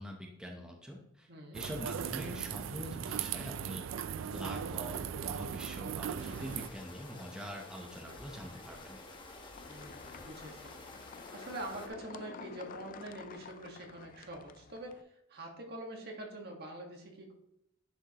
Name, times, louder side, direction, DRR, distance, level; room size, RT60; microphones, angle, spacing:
voice 1, 0.0-9.0, equal, 5° right, 0 dB, 0.8 m, -45 dB
voice 2, 1.3-1.6 9.7-10.7 11.3-15.0 15.3-17.3, right 1 dB, 55° right, 1 dB, 1.6 m, -45 dB
sound 1, 1.5-6.7, right 8 dB, 80° right, 0.4 m, -38 dB
sound 2, 6.2-11.9, left 2 dB, 25° left, 1.0 m, -50 dB
sound 3, 9.6-15.0, left 6 dB, 45° left, 0.3 m, -51 dB
10.0 x 5.3 x 3.0 m, 0.79 s
head